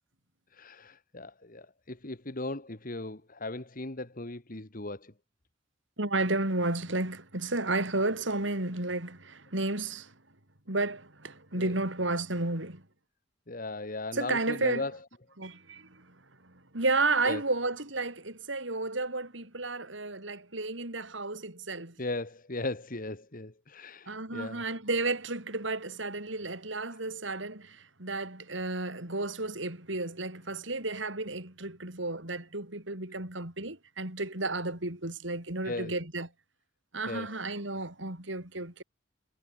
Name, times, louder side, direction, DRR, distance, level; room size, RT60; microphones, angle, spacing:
voice 1, 0.5-5.1 11.5-11.7 13.5-15.0 17.3-17.4 22.0-24.6 35.6-36.0 37.1-37.3, left 2 dB, 45° left, 2.0 m, -37 dB
voice 2, 6.0-10.1 10.7-12.8 14.1-14.9 15.4-16.2 16.4-22.0 24.1-36.3 36.9-38.8, right 2 dB, 70° right, 5.1 m, -32 dB
head